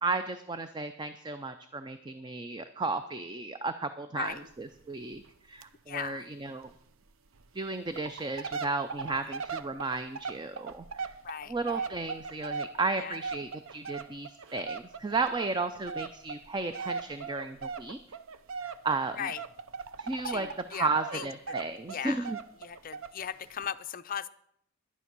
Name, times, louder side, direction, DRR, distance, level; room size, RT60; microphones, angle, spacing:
voice 1, 0.0-6.7 7.5-11.1 11.5-18.0 18.6-19.3 20.0-22.4, right 3 dB, 20° right, 10 dB, 0.4 m, -34 dB
sound 1, 4.3-4.5 4.7-4.8 5.1-5.3 5.6-5.7 6.1-6.2 6.7-6.8 7.4-7.5 7.9-20.7 21.0-23.2 23.6-23.7, right 5 dB, 65° right, 0.6 m, -39 dB
voice 2, 5.9-6.3 11.2-11.8 13.0-13.2 19.2-19.4 20.2-21.3 21.9-22.2 22.6-24.3, left 8 dB, 40° left, 12 dB, 0.5 m, -38 dB
11.0 x 9.7 x 6.0 m, 0.71 s
head